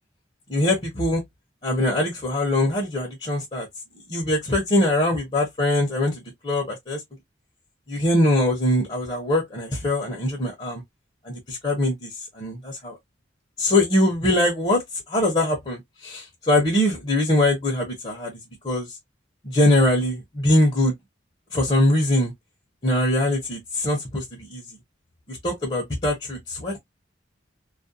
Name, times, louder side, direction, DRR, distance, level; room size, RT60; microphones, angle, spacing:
voice 1, 0.5-1.2 1.6-3.7 4.1-7.0 7.9-10.8 11.2-13.0 13.6-14.8 15.1-18.4 18.6-19.0 19.4-21.0 21.5-22.3 22.8-24.6 25.3-26.8, left 1 dB, 30° left, 0.6 m, -22 dB
2.4 x 2.1 x 2.5 m
head